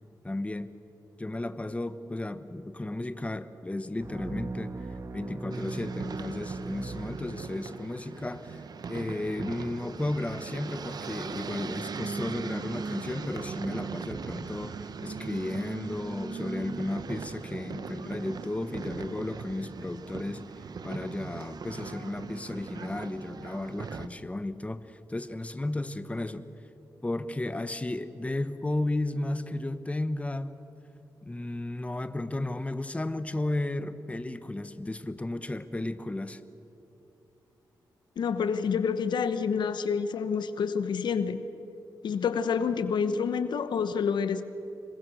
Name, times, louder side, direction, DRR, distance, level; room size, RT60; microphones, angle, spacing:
voice 1, 0.2-0.7 1.2-4.7 5.1-8.6 8.9-20.4 20.8-26.5 27.0-30.6 31.2-36.4, left 2 dB, 15° left, 12 dB, 1.1 m, -34 dB
sound 1, 4.0-7.8, right 3 dB, 40° right, 1.4 m, -38 dB
sound 2, 5.5-24.1, right 5 dB, 60° right, 1.0 m, -39 dB
voice 2, 38.2-41.4 42.0-44.4, left 6 dB, 80° left, 12 dB, 1.0 m, -28 dB
27.0 x 22.0 x 6.4 m, 2.9 s
cardioid pair, 70°, 8 cm